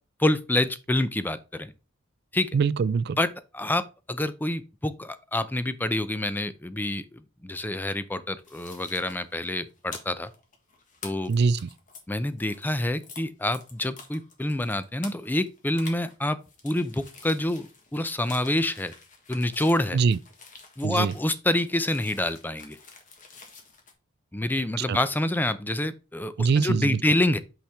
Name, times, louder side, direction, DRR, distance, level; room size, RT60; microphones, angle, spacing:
voice 1, 0.2-1.7 2.3-2.5 3.2-3.3 3.5-10.3 11.0-11.3 12.1-16.4 16.6-18.9 19.3-20.0 20.8-22.8 24.3-27.4, left 1 dB, 10° left, 0.5 m, -27 dB
voice 2, 2.5-3.2 11.3-11.7 19.9-20.2 20.8-21.1 24.9-25.0 26.4-27.0, right 5 dB, 55° right, 0.4 m, -23 dB
sound 1, 8.4-13.2 13.5-23.9, left 4 dB, 40° left, 1.6 m, -47 dB
5.7 x 5.7 x 3.4 m
head